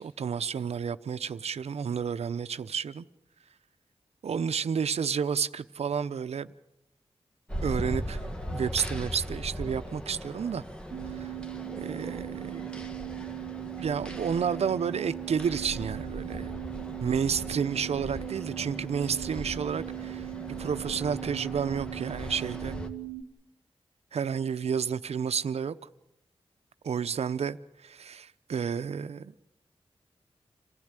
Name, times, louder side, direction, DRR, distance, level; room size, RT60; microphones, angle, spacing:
voice 1, 0.0-3.1 4.2-6.5 7.6-8.2 8.5-10.6 11.1-11.3 11.8-12.8 13.8-16.5 17.0-20.3 20.6-22.8 24.1-25.8 26.8-29.3, right 7 dB, 80° right, 0.8 m, -31 dB
sound 1, 7.5-22.9, equal, 10° left, 1.8 m, -39 dB
sound 2, 10.9-23.2, right 23 dB, 65° right, 1.2 m, -39 dB
27.5 x 15.5 x 9.0 m
wide cardioid pair, 105°, 11 cm